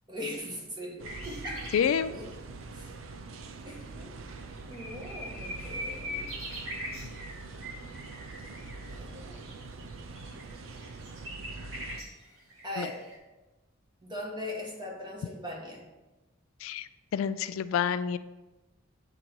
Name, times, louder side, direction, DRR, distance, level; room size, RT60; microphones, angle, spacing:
voice 1, 0.1-1.7 2.1-2.3 2.7-3.0 3.6-4.1 4.7-7.0 8.9-9.4 12.6-13.0 14.0-15.8, left 1 dB, 20° right, -2 dB, 1.5 m, -40 dB
sound 1, 1.0-12.0, right 3 dB, 70° right, 0.5 m, -44 dB
sound 2, 1.0-2.0 3.4-3.5 4.0-4.1 4.3-13.2, equal, 90° right, 2.1 m, -42 dB
voice 2, 1.7-2.1 12.8-12.9 16.6-18.2, left 8 dB, 80° left, 14 dB, 0.3 m, -28 dB
8.7 x 4.0 x 4.4 m, 1.1 s
head